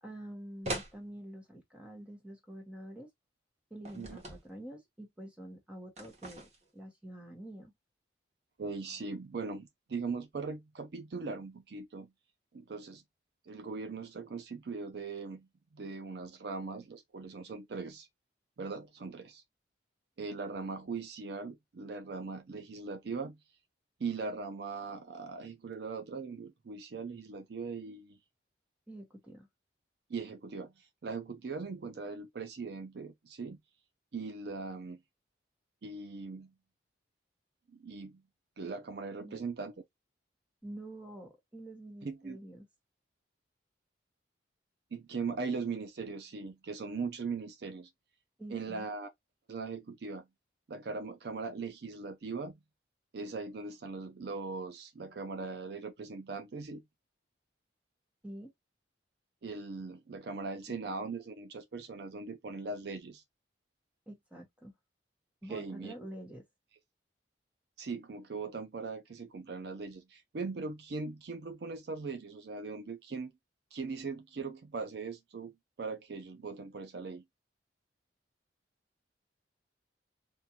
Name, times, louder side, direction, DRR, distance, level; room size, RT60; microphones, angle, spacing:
voice 1, 0.0-3.1 3.7-6.5 6.7-7.7 28.9-29.5 39.1-39.5 40.6-42.7 48.4-48.9 58.2-58.5 64.1-64.7 65.4-66.4, right 1 dB, 5° right, 1.0 m, -47 dB
sound 1, 0.6-0.9 3.8-4.4 6.0-6.7, right 1 dB, 35° right, 0.9 m, -40 dB
voice 2, 8.6-12.1 12.5-13.0 13.5-15.5 15.7-18.1 18.6-19.4 20.2-23.4 24.0-28.2 30.1-33.6 34.1-35.0 35.8-36.5 37.7-38.2 38.6-39.7 42.0-42.4 44.9-47.9 48.5-49.1 49.5-50.3 50.7-52.6 53.1-56.8 59.4-63.2 65.5-65.9 67.8-73.3 73.7-77.2, right 4 dB, 60° right, 0.4 m, -40 dB
3.7 x 2.5 x 2.7 m
head